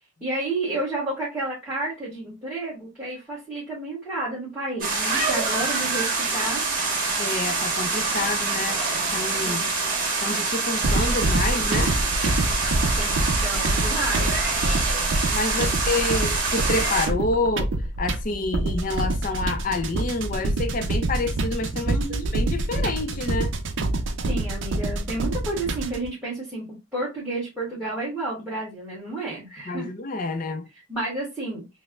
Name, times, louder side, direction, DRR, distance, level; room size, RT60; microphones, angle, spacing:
voice 1, 0.2-6.6 9.4-9.7 13.0-14.3 15.5-16.0 21.8-22.4 24.2-29.9 30.9-31.7, right 2 dB, 5° right, 1.3 m, -31 dB
sound 1, 4.8-17.1, right 3 dB, 40° right, 1.3 m, -25 dB
voice 2, 7.2-8.8 9.1-9.6 10.2-12.0 15.3-17.7 18.0-22.0 22.3-23.5 29.7-30.7, left 3 dB, 40° left, 0.4 m, -28 dB
sound 2, 10.8-26.1, right 2 dB, 65° right, 0.5 m, -26 dB
5.1 x 2.0 x 2.3 m
head